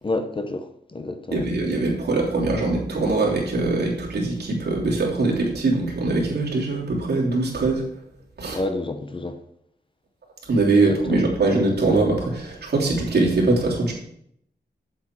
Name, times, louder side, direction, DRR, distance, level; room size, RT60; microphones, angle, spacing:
voice 1, 0.0-1.4 8.5-9.4 10.9-11.3, left 2 dB, 30° left, 0.8 m, -29 dB
voice 2, 1.3-7.8 8.4-8.6 10.5-13.9, right 3 dB, 70° right, 3.3 m, -22 dB
8.2 x 8.0 x 4.6 m
wide cardioid pair, 140°, 17 cm